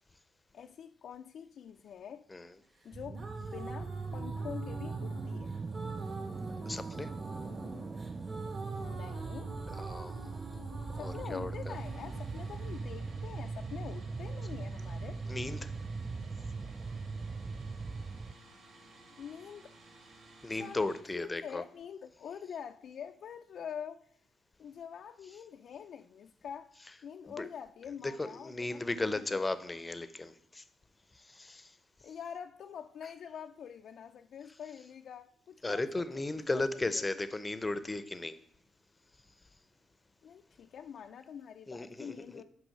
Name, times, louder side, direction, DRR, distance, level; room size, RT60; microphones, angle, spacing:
voice 1, 0.5-2.3 2.8-5.5 8.7-9.5 10.9-15.2 19.2-19.7 20.5-24.2 24.6-26.8 27.0-29.4 32.0-36.0 36.5-37.0 40.2-42.4, left 8 dB, 65° left, 0.4 m, -46 dB
sound 1, 2.8-13.8, right 2 dB, 45° right, 2.0 m, -47 dB
sound 2, 2.9-18.3, right 4 dB, 30° right, 0.3 m, -40 dB
voice 2, 6.7-7.1 9.7-11.8 15.3-15.7 20.4-21.6 27.3-27.5 28.0-30.6 31.2-31.7 35.6-38.4 41.7-42.2, left 2 dB, 20° left, 0.6 m, -36 dB
sound 3, 11.7-21.0, right 2 dB, 65° right, 1.6 m, -57 dB
6.2 x 5.3 x 6.5 m
cardioid pair, 90°, 0 cm